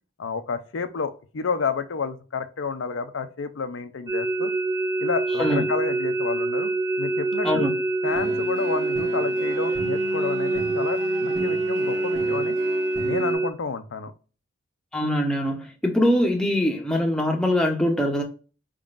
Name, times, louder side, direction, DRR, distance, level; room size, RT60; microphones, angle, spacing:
voice 1, 0.2-4.5 5.0-6.7 7.0-7.7 8.0-12.5 13.0-14.1, left 5 dB, 85° left, 0.6 m, -30 dB
sound 1, 4.1-13.5, right 2 dB, 20° right, 0.4 m, -25 dB
sound 2, 8.0-13.3, equal, 40° right, 1.1 m, -37 dB
voice 2, 14.9-18.2, equal, 5° left, 0.8 m, -23 dB
4.8 x 3.7 x 2.4 m
head